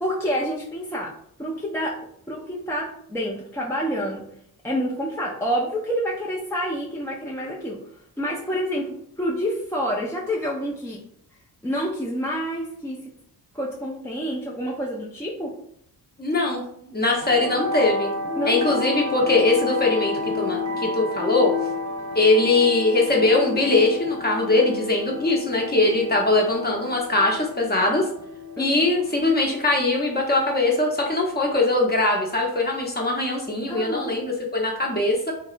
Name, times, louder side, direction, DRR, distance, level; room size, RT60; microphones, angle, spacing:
voice 1, 0.0-1.1 1.4-1.9 2.3-4.2 4.6-7.8 8.2-11.0 11.6-13.0 13.5-15.5 18.4-18.8 28.6-28.9 33.7-34.1, equal, 5° left, -3 dB, 0.4 m, -28 dB
voice 2, 16.2-18.1 18.4-21.5 22.1-28.0 28.6-35.3, left 2 dB, 20° left, 0 dB, 0.8 m, -21 dB
sound 1, 17.1-31.2, left 3 dB, 40° right, 0.7 m, -31 dB
2.6 x 2.0 x 2.4 m, 0.68 s
supercardioid pair, 45°, 43 cm